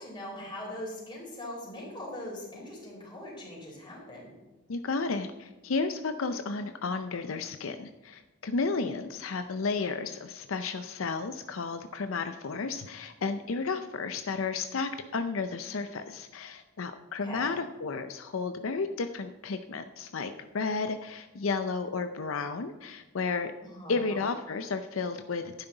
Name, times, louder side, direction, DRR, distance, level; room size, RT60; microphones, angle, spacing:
voice 1, 0.0-4.3 17.2-17.5 23.7-24.3, left 1 dB, 20° left, -2 dB, 3.9 m, -41 dB
voice 2, 4.7-23.5 23.9-25.6, left 4 dB, 75° left, 9 dB, 0.6 m, -32 dB
11.5 x 9.8 x 3.9 m, 1.2 s
head